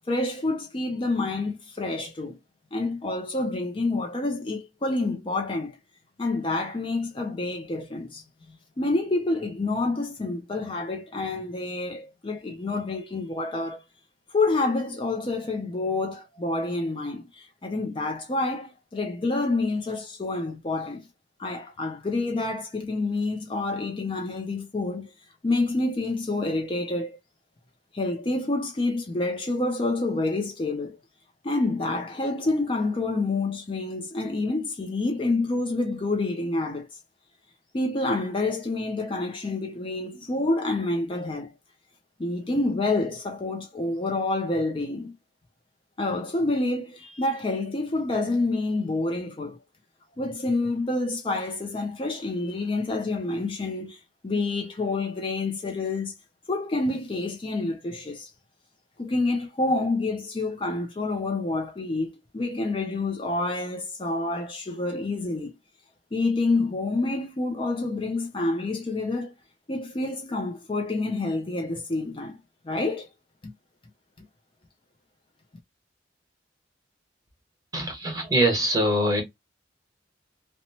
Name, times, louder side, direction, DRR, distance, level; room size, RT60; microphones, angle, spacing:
voice 1, 0.1-2.4 2.7-5.8 6.2-13.8 14.3-21.0 21.4-25.1 25.4-27.2 27.9-31.0 31.4-37.0 37.7-41.5 42.2-45.1 46.0-49.6 50.2-56.1 56.5-58.3 59.0-65.5 66.1-69.3 69.7-72.4 72.6-73.1, left 2 dB, 25° left, 0.4 m, -28 dB
voice 2, 77.7-79.2, right 1 dB, 20° right, 1.1 m, -23 dB
2.8 x 2.1 x 2.7 m
head